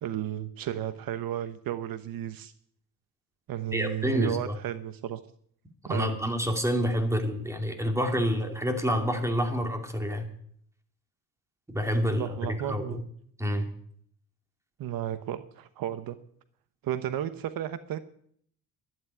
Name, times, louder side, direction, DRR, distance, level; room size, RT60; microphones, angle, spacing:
voice 1, 0.0-2.5 3.5-5.2 5.9-6.2 12.1-13.0 14.8-16.2 16.8-18.0, right 11 dB, 65° right, 12 dB, 1.1 m, -33 dB
voice 2, 3.7-4.6 5.9-10.3 11.7-13.0 13.4-13.7, equal, 10° right, 5 dB, 2.6 m, -28 dB
12.0 x 11.0 x 9.7 m, 0.65 s
cardioid pair, 130°, 37 cm